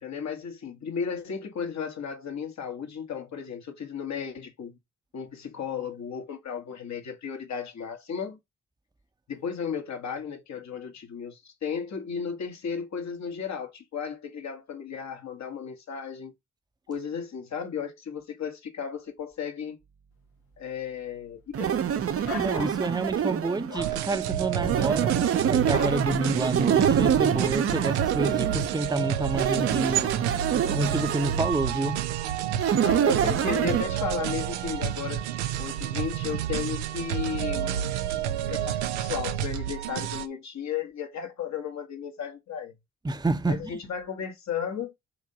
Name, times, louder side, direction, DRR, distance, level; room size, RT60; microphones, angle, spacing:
voice 1, 0.0-4.8 5.1-8.4 9.3-16.3 16.9-19.8 20.6-21.8 32.7-35.2 35.6-37.9 38.5-42.7 43.5-45.0, left 7 dB, 55° left, 1.6 m, -34 dB
sound 1, 21.5-23.7 24.6-28.8 29.3-31.5 32.6-33.8, right 8 dB, 45° right, 0.7 m, -26 dB
sound 2, 22.2-22.8 23.7-23.9 25.7-26.0, left 6 dB, 75° left, 1.2 m, -37 dB
voice 2, 22.4-32.0 43.0-43.8, right 2 dB, 10° right, 0.8 m, -29 dB
sound 3, 23.8-40.3, right 10 dB, 90° right, 0.5 m, -30 dB
4.9 x 3.7 x 5.5 m
hypercardioid pair, 40°, 33 cm